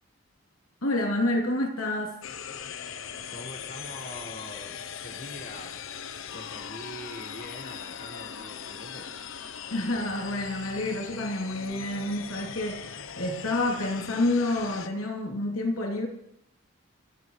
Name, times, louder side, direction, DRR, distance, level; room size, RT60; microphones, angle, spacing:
voice 1, 0.8-2.2 9.7-12.8 13.2-16.1, left 2 dB, 90° left, 0 dB, 3.0 m, -28 dB
sound 1, 2.2-14.9, left 7 dB, 75° left, 0.8 m, -40 dB
voice 2, 3.3-5.7 6.3-9.1, left 1 dB, 40° left, 2 dB, 1.5 m, -43 dB
26.5 x 13.0 x 3.2 m, 0.79 s
head